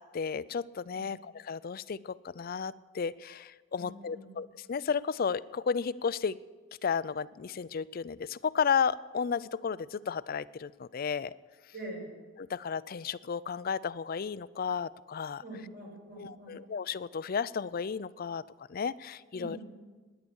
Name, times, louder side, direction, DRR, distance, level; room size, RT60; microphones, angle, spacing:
voice 1, 0.0-6.4 6.8-11.3 12.4-15.4 16.2-18.4 18.7-19.6, left 6 dB, 50° left, 17 dB, 0.4 m, -33 dB
voice 2, 3.7-4.3 11.7-12.1 15.4-16.6 19.3-19.7, right 1 dB, 55° right, -1 dB, 6.0 m, -44 dB
17.5 x 10.5 x 7.1 m, 1.3 s
head